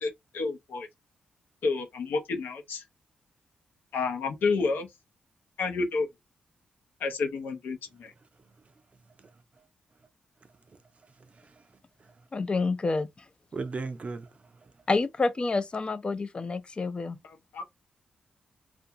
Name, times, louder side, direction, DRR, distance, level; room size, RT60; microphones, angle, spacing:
voice 1, 0.0-0.9 1.6-2.8 3.9-4.9 5.6-6.1 7.0-8.1 17.2-17.6, left 4 dB, 80° left, 0.6 m, -30 dB
voice 2, 12.3-13.1 14.9-17.2, left 3 dB, 30° left, 0.4 m, -28 dB
voice 3, 13.5-14.3 14.6-14.7, right 4 dB, 40° right, 0.5 m, -37 dB
2.5 x 2.3 x 2.7 m
cardioid pair, 75°, 3 cm